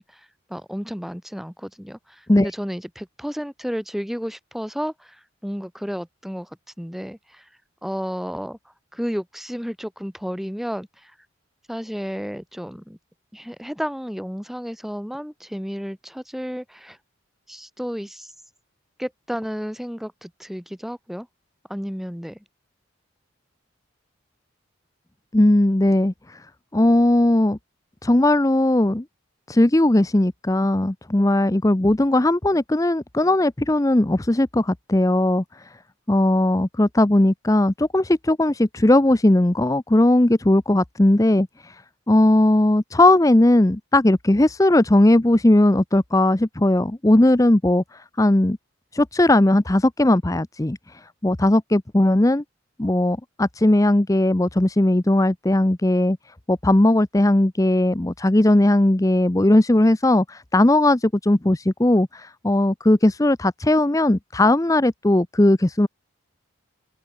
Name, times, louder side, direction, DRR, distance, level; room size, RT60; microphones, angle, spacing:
voice 1, 0.0-6.5 6.8-7.5 7.8-8.6 8.9-11.1 11.7-13.0 13.3-17.0 17.5-18.3 19.0-21.3 21.7-22.4, equal, ahead, 2.9 m, -32 dB
voice 2, 25.3-26.4 26.7-27.6 28.0-29.0 29.5-35.7 36.1-41.8 42.1-48.6 48.9-52.4 52.8-56.2 56.5-65.9, left 1 dB, 15° left, 0.6 m, -18 dB
open air
head